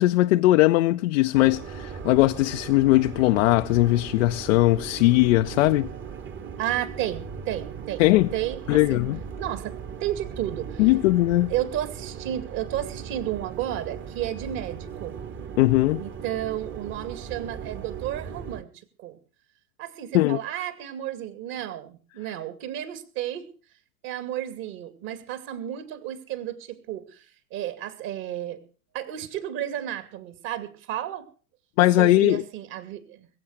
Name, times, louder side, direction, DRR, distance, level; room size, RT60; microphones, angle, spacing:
voice 1, 0.0-5.9 8.0-8.3 8.7-9.2 10.8-11.5 15.6-16.0 20.1-20.4 31.8-32.4, left 18 dB, 55° left, 0.6 m, -20 dB
sound 1, 1.3-18.6, right 7 dB, 25° right, 1.3 m, -38 dB
voice 2, 6.6-8.0 8.3-9.0 9.4-9.7 10.0-10.9 11.5-15.2 16.0-18.7 19.0-19.2 19.8-23.5 24.0-27.3 27.5-28.6 28.9-31.3 32.0-33.3, right 12 dB, 50° right, 2.5 m, -32 dB
21.5 x 7.9 x 6.3 m
figure-of-eight pair, 80°, 45 cm